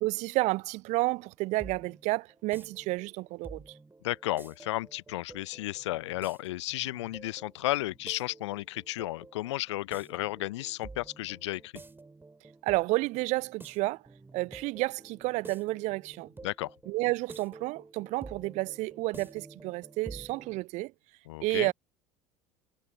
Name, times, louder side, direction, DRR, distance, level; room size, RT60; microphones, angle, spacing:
voice 1, 0.0-3.6 12.6-14.0 14.3-16.3 16.9-20.9 21.4-21.7, right 21 dB, 45° right, 0.6 m, -30 dB
sound 1, 1.2-20.6, right 3 dB, 15° right, 2.1 m, -50 dB
voice 2, 4.0-11.7 16.4-16.7 21.3-21.7, left 17 dB, 65° left, 0.6 m, -33 dB
figure-of-eight pair, 65°, 16 cm